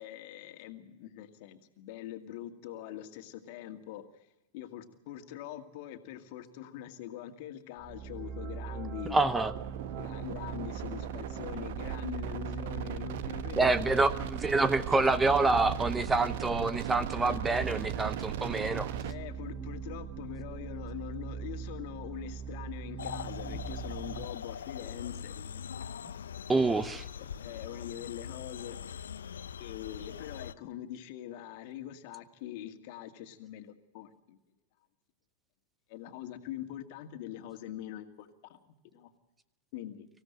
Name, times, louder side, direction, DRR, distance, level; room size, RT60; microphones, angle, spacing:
voice 1, 0.0-4.0 4.5-9.3 9.9-14.0 19.0-25.7 27.2-28.8 29.6-34.4 35.9-38.6 38.9-39.1 39.7-40.1, left 12 dB, 50° left, 7 dB, 2.1 m, -43 dB
sound 1, 7.8-24.2, right 7 dB, 40° right, 1.3 m, -41 dB
voice 2, 9.1-9.5 13.6-18.9 26.5-27.0, right 3 dB, 10° right, 15 dB, 0.8 m, -27 dB
sound 2, 9.5-19.1, right 10 dB, 55° right, 1.1 m, -39 dB
sound 3, 23.0-30.5, left 8 dB, 70° left, 0.7 m, -42 dB
25.0 x 16.0 x 7.8 m, 0.98 s
figure-of-eight pair, 95°, 0 cm